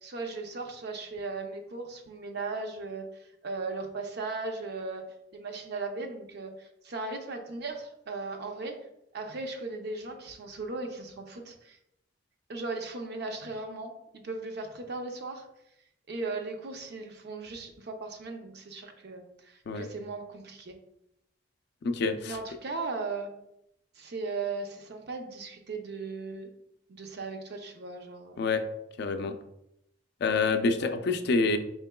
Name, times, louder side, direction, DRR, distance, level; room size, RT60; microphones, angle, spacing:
voice 1, 0.0-3.0 3.4-5.1 5.3-8.8 9.1-11.8 12.5-15.5 16.1-20.8 22.2-23.3 24.0-26.5 26.9-28.4 30.8-30.9, right 3 dB, 60° right, 4 dB, 0.6 m, -37 dB
voice 2, 21.8-22.4 28.4-28.6 29.0-29.3 30.2-31.6, left 3 dB, 60° left, 8 dB, 0.4 m, -27 dB
4.4 x 3.7 x 2.2 m, 0.81 s
head